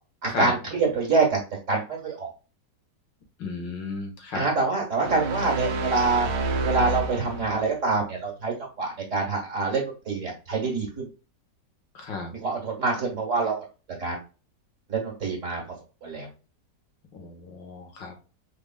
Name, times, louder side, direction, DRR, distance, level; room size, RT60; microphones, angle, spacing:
voice 1, 0.2-1.4 1.7-2.3 4.3-6.3 6.6-11.1 12.4-13.6 14.0-14.2 14.9-15.6 16.0-16.3, right 3 dB, 45° right, -1 dB, 1.9 m, -26 dB
voice 2, 3.4-4.5 11.9-12.3 17.1-18.2, left 3 dB, 90° left, 2 dB, 2.1 m, -33 dB
sound 1, 5.0-7.8, right 2 dB, 75° right, 1.5 m, -29 dB
5.0 x 3.5 x 2.3 m, 0.34 s
omnidirectional pair, 1.9 m